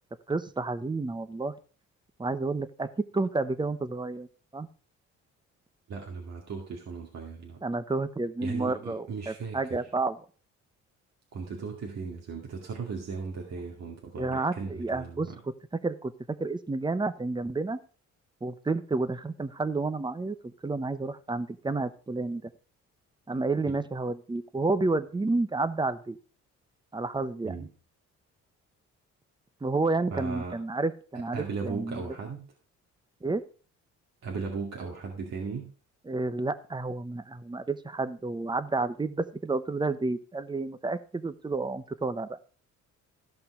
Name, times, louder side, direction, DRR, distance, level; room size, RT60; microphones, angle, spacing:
voice 1, 0.3-1.5 2.2-4.3 4.5-4.7 7.6-10.2 14.2-15.3 15.8-16.1 16.4-17.8 18.4-22.5 23.3-26.2 26.9-27.7 29.6-32.0 33.2-33.4 36.1-42.4, right 3 dB, 15° right, 13 dB, 1.0 m, -30 dB
voice 2, 5.9-7.6 8.4-9.8 11.3-15.4 23.7-23.8 27.4-27.7 30.1-30.5 31.3-32.4 34.2-35.7, right 4 dB, 60° right, 0 dB, 2.4 m, -37 dB
14.0 x 5.7 x 4.9 m, 0.39 s
cardioid pair, 90°, 30 cm